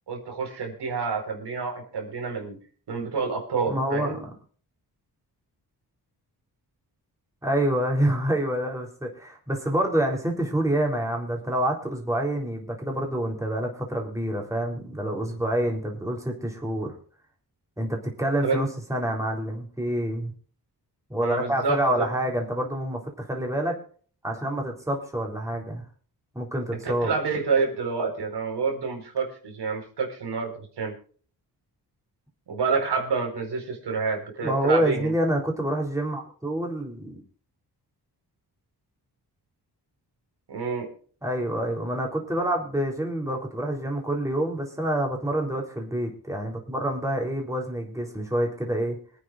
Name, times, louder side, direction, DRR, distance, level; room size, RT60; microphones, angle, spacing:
voice 1, 0.1-2.6 2.9-4.2 18.4-18.6 21.2-22.1 26.8-30.9 32.5-35.2 40.5-40.9, right 5 dB, 85° right, 2 dB, 4.7 m, -28 dB
voice 2, 3.7-4.3 7.4-16.9 17.8-20.3 21.1-23.7 24.2-25.8 26.4-27.2 34.4-37.2 41.2-49.0, right 1 dB, 10° right, 0 dB, 3.6 m, -27 dB
26.5 x 9.5 x 2.5 m, 0.43 s
wide cardioid pair, 105°, 40 cm